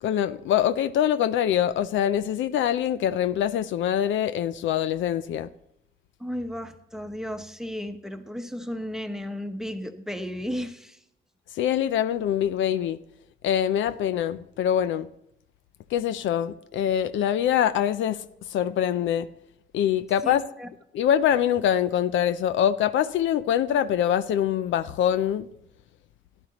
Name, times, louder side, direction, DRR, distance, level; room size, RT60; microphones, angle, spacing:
voice 1, 0.0-5.5 11.6-13.0 13.4-15.1 15.9-18.2 18.5-19.3 19.7-20.4 20.9-25.5, left 10 dB, 75° left, 0.5 m, -24 dB
voice 2, 6.2-11.0 20.2-20.3 20.6-20.7, equal, ahead, 0.9 m, -34 dB
13.5 x 11.0 x 2.9 m
cardioid pair, 90°, 20 cm